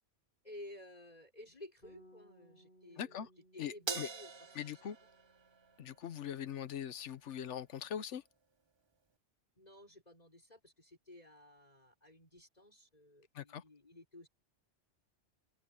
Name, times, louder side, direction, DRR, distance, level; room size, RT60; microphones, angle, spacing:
voice 1, 0.4-5.1 9.6-14.3, left 1 dB, 35° left, 5.6 m, -55 dB
Bass guitar, 1.8-8.1, left 1 dB, 55° left, 6.7 m, -66 dB
voice 2, 3.0-3.3 3.6-4.1 4.6-5.0 5.8-8.2 13.3-13.6, left 9 dB, 75° left, 1.1 m, -41 dB
Crash cymbal, 3.9-6.4, right 5 dB, 35° right, 0.4 m, -44 dB
open air
omnidirectional pair, 1.2 m